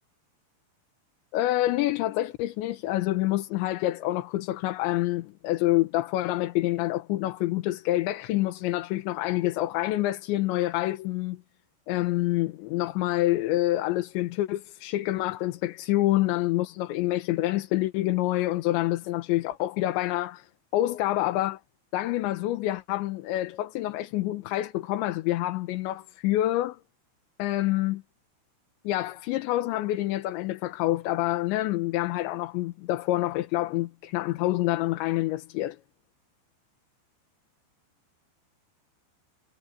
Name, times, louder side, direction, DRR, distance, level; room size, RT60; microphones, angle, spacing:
voice 1, 1.3-11.4 11.9-21.6 21.9-26.8 27.4-28.0 28.8-35.8, left 16 dB, 75° left, 3.3 m, -27 dB
omnidirectional pair, 5.6 m